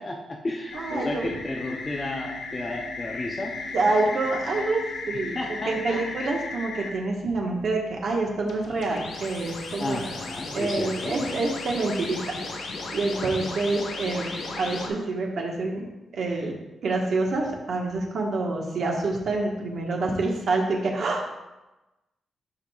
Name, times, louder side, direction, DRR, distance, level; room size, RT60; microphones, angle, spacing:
voice 1, 0.0-3.5 5.4-6.0 9.8-11.2, left 2 dB, 20° left, 0 dB, 0.6 m, -33 dB
sound 1, 0.7-6.9 8.4-14.9, left 3 dB, 65° left, 1.3 m, -35 dB
voice 2, 0.7-1.3 3.7-10.1 10.5-15.9 16.1-16.5 16.8-21.3, right 3 dB, 55° right, 0 dB, 1.3 m, -27 dB
12.0 x 5.2 x 2.3 m, 1.0 s
wide cardioid pair, 165°, 0 cm